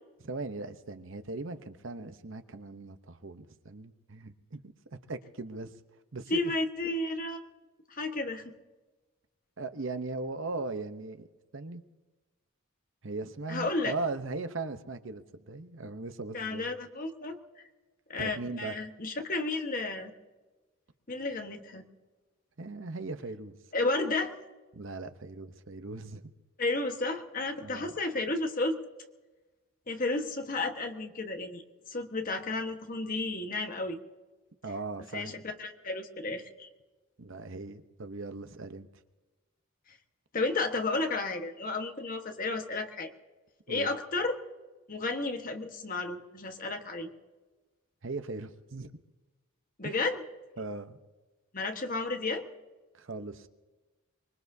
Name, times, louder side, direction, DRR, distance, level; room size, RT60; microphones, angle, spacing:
voice 1, 0.2-5.8 6.1-6.5 9.6-11.3 11.5-11.8 13.0-16.8 18.2-18.8 22.6-23.5 24.7-26.2 27.6-27.9 34.6-35.3 37.2-38.9 43.7-43.9 48.0-48.9 49.8-50.0 50.6-51.0 52.9-53.5, right 3 dB, 60° right, 9 dB, 0.9 m, -39 dB
voice 2, 6.3-7.4 7.9-8.5 13.5-13.9 16.3-17.4 18.1-20.1 21.1-21.8 23.7-24.3 26.6-28.8 29.9-34.0 35.1-36.7 39.9-40.0 40.3-43.1 43.7-44.4 44.9-47.1 49.8-50.2 51.5-52.5, left 2 dB, 40° left, 5 dB, 1.3 m, -32 dB
24.5 x 21.5 x 2.7 m, 1.2 s
head